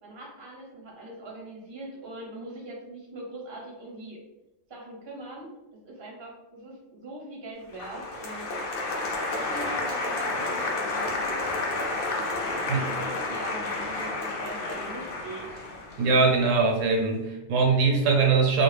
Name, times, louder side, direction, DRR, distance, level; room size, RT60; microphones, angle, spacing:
voice 1, 0.0-4.2 4.7-5.5 5.8-8.6 9.4-11.4 12.5-15.6, right 2 dB, 30° right, -2 dB, 0.5 m, -42 dB
Applause, 7.7-16.8, left 2 dB, 60° left, 0.6 m, -31 dB
voice 2, 16.0-18.6, right 4 dB, 80° right, 1 dB, 0.9 m, -22 dB
2.3 x 2.0 x 3.2 m, 0.98 s
omnidirectional pair, 1.3 m